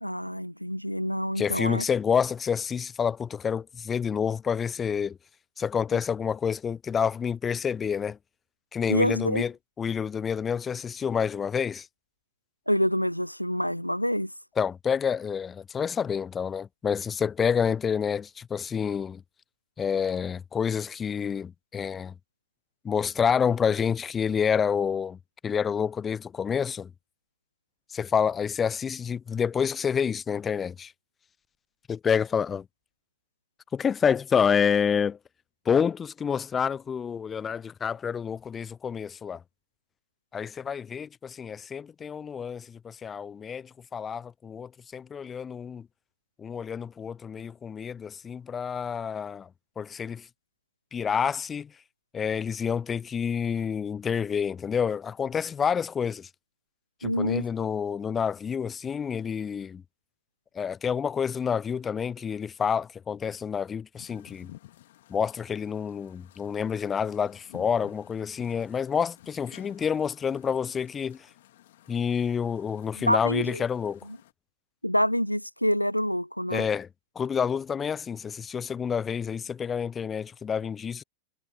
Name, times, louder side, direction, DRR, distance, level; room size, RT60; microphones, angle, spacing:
voice 1, 0.0-1.8 8.9-9.4 12.7-14.3 57.0-57.4 73.0-73.6 74.8-76.7, equal, 90° left, 0.5 m, -26 dB
voice 2, 1.4-5.2 5.6-8.2 8.7-11.9 14.6-19.2 19.8-22.1 22.8-26.9 27.9-30.9 31.9-32.6 33.7-35.2 35.7-39.4 40.3-45.9 46.4-49.5 49.8-50.3 50.9-51.7 52.1-56.3 57.0-59.8 60.5-64.5 65.1-71.3 71.9-74.0 76.5-76.9 77.2-81.0, left 7 dB, 20° left, 0.6 m, -28 dB
sound 1, 63.9-74.3, left 15 dB, 55° left, 2.5 m, -53 dB
figure-of-eight pair, 90°, 0 cm